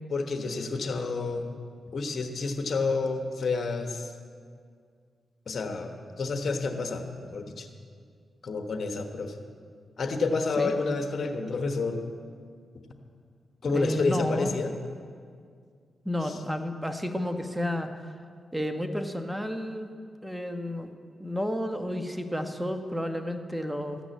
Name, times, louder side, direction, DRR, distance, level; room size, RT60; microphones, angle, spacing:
voice 1, 0.1-1.6 1.9-4.1 5.5-5.9 6.2-7.7 8.4-9.3 10.0-12.0 13.6-14.7 16.2-16.4, left 3 dB, 60° left, 5 dB, 1.3 m, -29 dB
voice 2, 13.7-14.5 16.0-17.9 18.5-19.9 20.2-20.9 21.2-24.0, equal, 5° right, 6 dB, 1.2 m, -31 dB
14.0 x 6.1 x 8.5 m, 2.1 s
supercardioid pair, 45°, 0 cm